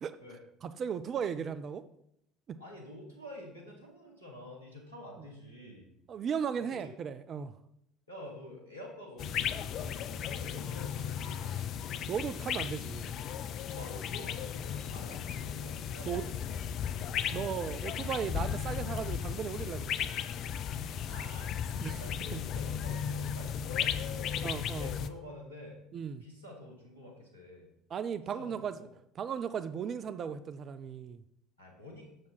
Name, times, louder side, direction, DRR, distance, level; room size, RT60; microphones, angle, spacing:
voice 1, 0.6-1.8 2.5-2.6 6.1-7.5 12.1-13.1 16.1-16.2 17.3-20.1 21.8-22.0 22.3-22.4 24.4-24.9 25.9-26.2 27.9-28.9 29.2-31.2, right 7 dB, 40° right, 13 dB, 0.3 m, -36 dB
voice 2, 2.6-5.9 6.6-6.9 8.1-11.6 13.7-16.6 17.2-17.4 21.0-21.6 21.9-25.8 26.2-27.7 28.3-28.9 31.6-32.1, left 1 dB, 85° left, -2 dB, 1.6 m, -48 dB
sound 1, 9.2-25.1, left 8 dB, 45° left, 0.4 m, -35 dB
7.0 x 6.4 x 4.0 m, 0.75 s
figure-of-eight pair, 60°, 0 cm